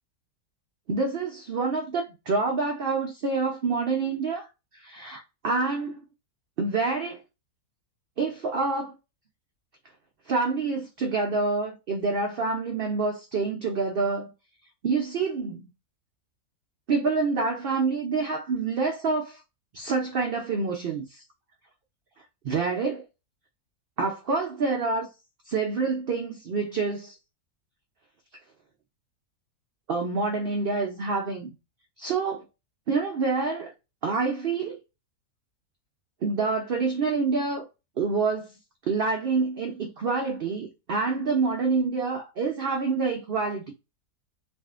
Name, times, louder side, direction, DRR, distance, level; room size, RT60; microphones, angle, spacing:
voice 1, 0.9-4.5 4.7-6.0 6.6-7.2 8.2-8.9 10.3-14.3 14.8-15.7 16.9-19.4 19.7-21.2 22.4-23.0 24.0-25.1 25.5-27.2 29.9-31.5 32.0-32.4 32.9-33.7 34.0-34.8 36.2-37.7 38.0-38.5 38.9-43.7, right 4 dB, 75° right, 0.5 m, -27 dB
3.5 x 2.4 x 2.3 m
omnidirectional pair, 1.6 m